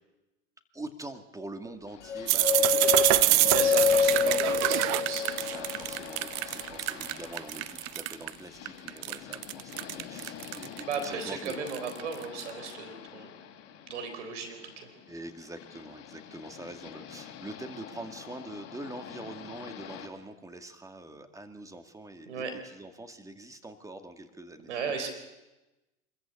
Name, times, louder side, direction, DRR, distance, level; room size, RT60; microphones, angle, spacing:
voice 1, 0.7-4.5 5.4-11.7 15.1-24.8, right 2 dB, 10° right, 7 dB, 2.2 m, -44 dB
sound 1, 1.9-20.1, left 10 dB, 45° left, 3.2 m, -45 dB
sound 2, 2.1-6.2, left 6 dB, 90° left, 1.0 m, -27 dB
sound 3, 2.3-8.3 8.7-12.5, right 19 dB, 45° right, 0.7 m, -26 dB
voice 2, 3.5-5.4 10.9-13.3 13.9-14.7 22.3-22.5 24.7-25.2, right 5 dB, 80° right, 6 dB, 3.9 m, -35 dB
25.0 x 14.0 x 8.5 m, 1.1 s
hypercardioid pair, 90°, 35 cm